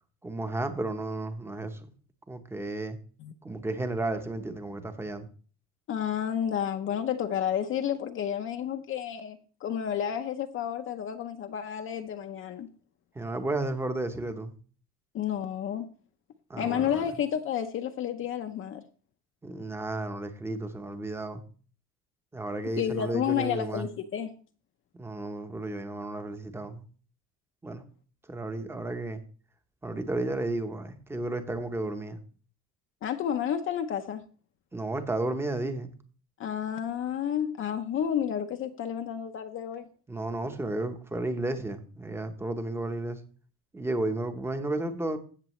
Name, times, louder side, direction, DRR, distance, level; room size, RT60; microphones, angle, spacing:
voice 1, 0.2-1.8 2.3-3.0 3.4-5.3 13.1-14.5 16.5-17.1 19.4-21.4 22.3-23.8 25.0-26.8 27.6-27.8 28.3-29.2 29.8-32.2 34.7-35.9 40.1-43.2 43.7-45.2, right 2 dB, 10° right, 0.8 m, -33 dB
voice 2, 5.9-12.7 15.1-15.9 16.6-18.8 22.8-24.3 33.0-34.2 36.4-39.8, left 9 dB, 40° left, 0.6 m, -31 dB
16.0 x 6.7 x 3.1 m
cardioid pair, 175°, 31 cm